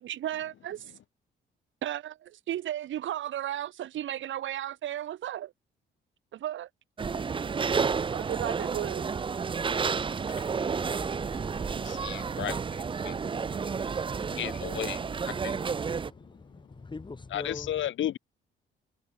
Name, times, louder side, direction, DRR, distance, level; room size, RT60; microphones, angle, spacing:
voice 1, 0.0-0.9 1.8-5.5 6.3-6.7 8.1-9.1, right 12 dB, 75° right, 2.6 m, -34 dB
sound 1, 7.0-16.1, right 5 dB, 25° right, 0.5 m, -31 dB
voice 2, 10.3-11.0 11.7-13.4 14.3-15.8 16.2-16.3 17.3-18.2, left 11 dB, 75° left, 4.3 m, -36 dB
sound 2, 10.6-14.3, right 1 dB, 5° right, 7.7 m, -50 dB
voice 3, 16.1-17.7, left 3 dB, 25° left, 3.0 m, -42 dB
cardioid pair, 90°, 20 cm